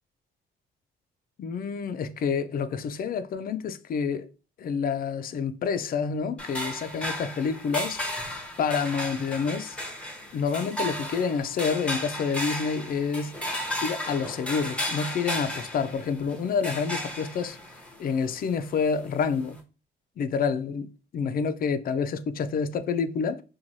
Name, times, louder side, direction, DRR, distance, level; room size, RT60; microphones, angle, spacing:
voice 1, 1.4-4.3 4.6-8.0 8.6-9.8 10.3-17.6 18.0-19.6 20.2-23.4, left 6 dB, 50° left, 0.4 m, -28 dB
sound 1, 6.4-19.6, left 1 dB, 5° left, 0.7 m, -35 dB
3.0 x 2.3 x 2.6 m
cardioid pair, 90°, 20 cm